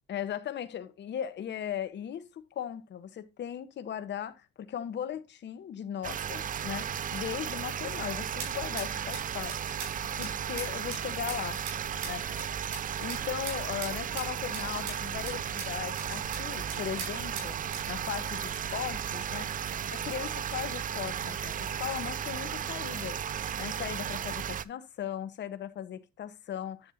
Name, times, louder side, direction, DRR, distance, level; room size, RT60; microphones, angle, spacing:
voice 1, 0.1-9.8 10.2-11.6 12.0-12.3 13.0-17.6 17.9-19.5 19.9-23.2 23.6-26.9, left 10 dB, 40° left, 1.0 m, -38 dB
sound 1, 6.0-24.7, right 8 dB, 30° right, 0.5 m, -35 dB
sound 2, 7.6-19.3, right 5 dB, 70° right, 5.9 m, -45 dB
10.5 x 7.4 x 2.6 m
cardioid pair, 120°, 29 cm